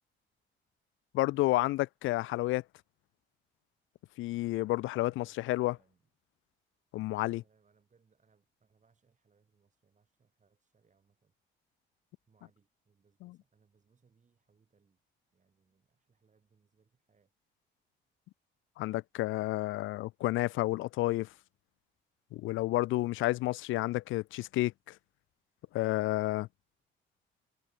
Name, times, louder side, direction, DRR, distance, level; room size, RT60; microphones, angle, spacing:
voice 1, 1.1-2.6 4.2-5.8 6.9-7.4 13.2-13.4 18.8-21.3 22.3-25.0 25.7-26.5, left 18 dB, 85° left, 0.4 m, -30 dB
voice 2, 5.0-6.0 7.2-11.3 12.3-15.0 15.3-17.3, right 5 dB, 40° right, 7.6 m, -71 dB
cardioid pair, 90°, 20 cm